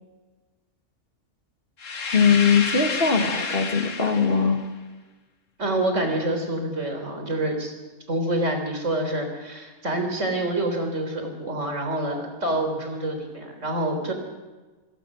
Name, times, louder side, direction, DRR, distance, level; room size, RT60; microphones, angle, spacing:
sound 1, 1.8-4.6, left 4 dB, 60° left, 2.0 m, -30 dB
voice 1, 2.1-4.6, left 5 dB, 40° left, 5 dB, 1.9 m, -20 dB
voice 2, 5.6-7.7 8.1-14.1, right 1 dB, 55° right, 5 dB, 4.1 m, -27 dB
25.5 x 18.0 x 6.3 m, 1.3 s
omnidirectional pair, 1.5 m